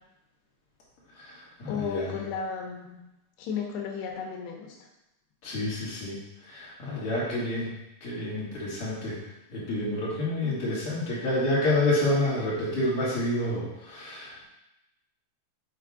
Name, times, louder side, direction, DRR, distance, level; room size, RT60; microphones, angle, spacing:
voice 1, 1.2-2.2 5.4-6.2 6.5-7.7 8.0-9.2 9.5-14.4, left 1 dB, 45° left, -8 dB, 3.2 m, -28 dB
voice 2, 1.7-3.0 3.4-4.8, left 6 dB, 85° left, 1 dB, 3.2 m, -34 dB
7.4 x 3.6 x 4.9 m, 0.90 s
omnidirectional pair, 4.7 m